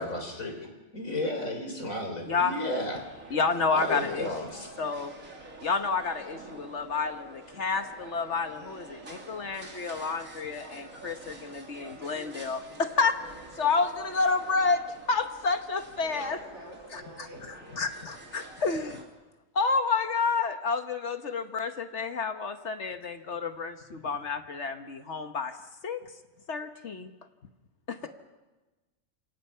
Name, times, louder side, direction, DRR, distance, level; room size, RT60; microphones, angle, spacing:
voice 1, 0.0-3.0 3.7-4.7, left 1 dB, 90° left, 4 dB, 4.2 m, -33 dB
sound 1, 2.9-19.0, right 2 dB, 85° right, 3.4 m, -47 dB
voice 2, 3.3-4.3 4.8-5.1 5.6-13.2 13.6-14.8 15.1-16.4 16.9-19.1 19.5-25.6 25.8-26.0 26.5-27.1 27.9-28.1, left 4 dB, 60° left, 8 dB, 1.4 m, -30 dB
voice 3, 16.0-17.7 28.0-28.1, equal, 55° right, -1 dB, 7.9 m, -46 dB
28.0 x 24.5 x 5.7 m, 1.2 s
omnidirectional pair, 1.4 m